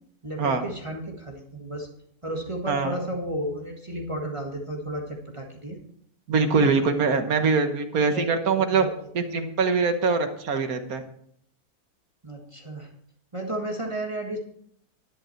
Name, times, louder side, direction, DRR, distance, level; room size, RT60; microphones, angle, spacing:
voice 1, 0.2-1.9 2.2-5.8 6.5-6.7 8.1-9.1 9.3-9.4 12.2-12.9 13.3-14.4, right 1 dB, 20° right, 0 dB, 1.6 m, -33 dB
voice 2, 2.7-3.0 6.3-8.8 9.1-11.0, right 4 dB, 75° right, 7 dB, 1.6 m, -23 dB
11.5 x 10.5 x 4.4 m, 0.67 s
omnidirectional pair, 1.6 m